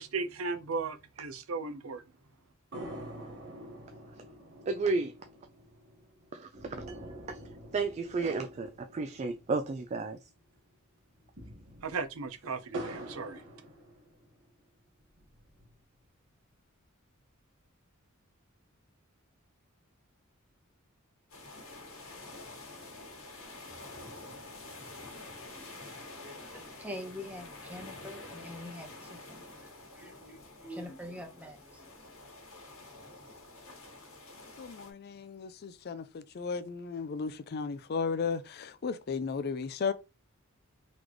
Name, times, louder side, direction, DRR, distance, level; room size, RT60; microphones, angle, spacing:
voice 1, 0.0-2.0 11.8-13.4, right 4 dB, 85° right, 0.7 m, -36 dB
sound 1, 2.7-10.3 10.6-10.7 11.1-14.5 15.0-16.0, right 1 dB, 60° right, 1.4 m, -46 dB
voice 2, 4.7-5.1 6.3-7.0 7.3-7.4 7.7-10.2, right 3 dB, 30° right, 0.3 m, -32 dB
sound 2, 21.3-34.9, left 2 dB, 80° left, 1.8 m, -48 dB
voice 3, 25.4-32.1, left 1 dB, 5° right, 0.9 m, -45 dB
voice 4, 34.6-39.9, left 5 dB, 50° left, 0.4 m, -35 dB
4.1 x 3.2 x 3.0 m
head